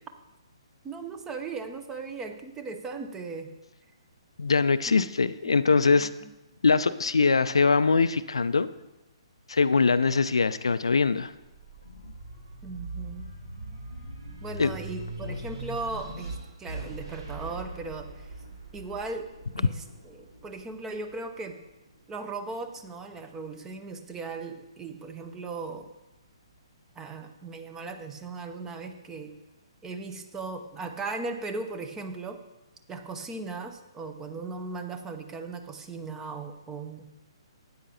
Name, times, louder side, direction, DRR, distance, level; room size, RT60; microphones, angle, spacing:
voice 1, 0.8-3.5 5.4-6.1 12.6-13.3 14.4-18.3 18.7-19.3 19.6-21.6 22.1-25.9 27.0-29.3 29.8-32.4 32.9-37.1, right 3 dB, 15° right, 7 dB, 0.7 m, -37 dB
voice 2, 4.4-6.1 6.6-8.7 9.5-11.3 14.6-14.7, left 4 dB, 70° left, 13 dB, 0.4 m, -22 dB
sound 1, 11.3-21.9 22.4-23.5, right 2 dB, 65° right, 2.9 m, -41 dB
13.0 x 9.1 x 2.9 m, 0.99 s
figure-of-eight pair, 130°, 3 cm